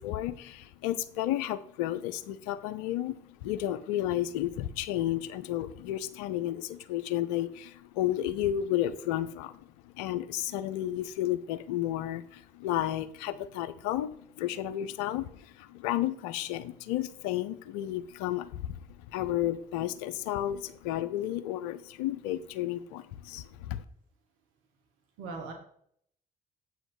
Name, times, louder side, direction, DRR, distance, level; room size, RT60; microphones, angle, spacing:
voice 1, 0.0-23.8, left 13 dB, 80° left, 15 dB, 0.5 m, -32 dB
voice 2, 25.2-25.5, right 4 dB, 75° right, 2 dB, 1.3 m, -40 dB
7.7 x 6.0 x 3.9 m, 0.64 s
hypercardioid pair, 45°, 21 cm